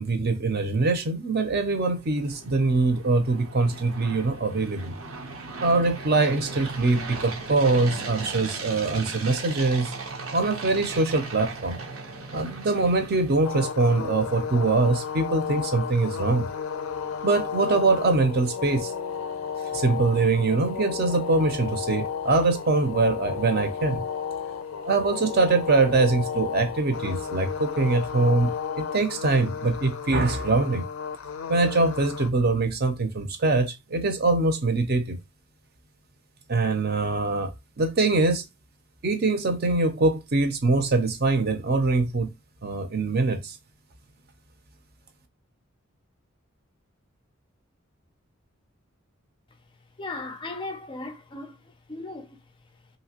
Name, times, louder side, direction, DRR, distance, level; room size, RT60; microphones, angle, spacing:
voice 1, 0.0-4.9 5.6-9.9 10.3-11.8 12.3-16.5 17.2-18.9 19.7-24.0 24.8-30.9 31.5-35.2 36.5-37.5 37.8-38.4 39.0-42.3 42.6-43.6, right 3 dB, 50° right, 0.6 m, -23 dB
sound 1, 1.4-13.7, right 3 dB, 85° right, 0.8 m, -38 dB
sound 2, 13.4-32.3, left 6 dB, 85° left, 0.4 m, -33 dB
voice 2, 50.0-51.6 51.9-52.4, left 2 dB, 25° left, 0.4 m, -36 dB
2.9 x 2.7 x 2.9 m
head